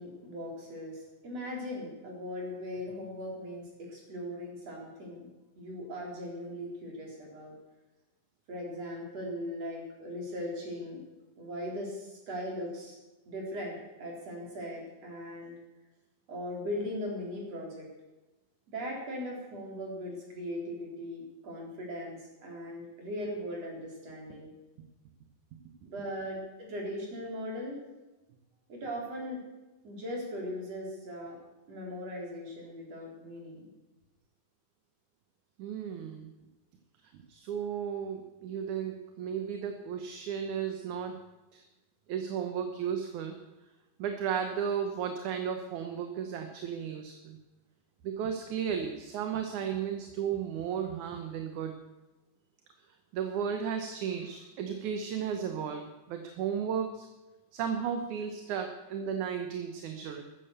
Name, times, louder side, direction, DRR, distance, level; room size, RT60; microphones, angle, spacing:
voice 1, 0.0-5.3 5.6-7.5 8.5-11.0 11.4-13.0 13.3-15.5 16.3-17.9 18.7-24.5 25.8-27.8 28.7-29.4 29.8-31.4 31.7-33.7, equal, 50° right, -1 dB, 5.4 m, -39 dB
voice 2, 35.6-36.3 37.1-41.2 41.5-41.6 42.1-43.4 44.0-47.4 48.0-51.8 53.1-57.1 57.5-60.2, right 7 dB, 70° right, 5 dB, 2.6 m, -34 dB
15.0 x 13.5 x 6.8 m, 1.1 s
omnidirectional pair, 3.7 m